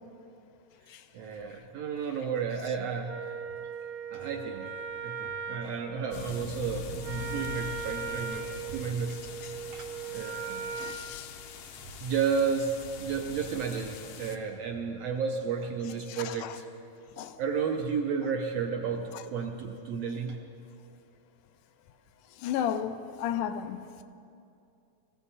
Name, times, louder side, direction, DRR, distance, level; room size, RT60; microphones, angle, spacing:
voice 1, 1.1-3.4 4.1-4.7 5.0-9.3 9.7-9.9 10.1-10.7 12.0-16.6 17.4-20.4, right 6 dB, 70° right, 1.6 m, -32 dB
Wind instrument woodwind instrument, 3.1-11.0, right 6 dB, 55° right, 1.3 m, -38 dB
sound 1, 6.1-14.4, left 6 dB, 70° left, 1.5 m, -43 dB
voice 2, 10.8-11.4 16.1-16.6 17.2-17.4 19.1-19.2 22.4-24.0, left 9 dB, 85° left, 2.2 m, -34 dB
21.0 x 15.0 x 4.1 m
omnidirectional pair, 3.6 m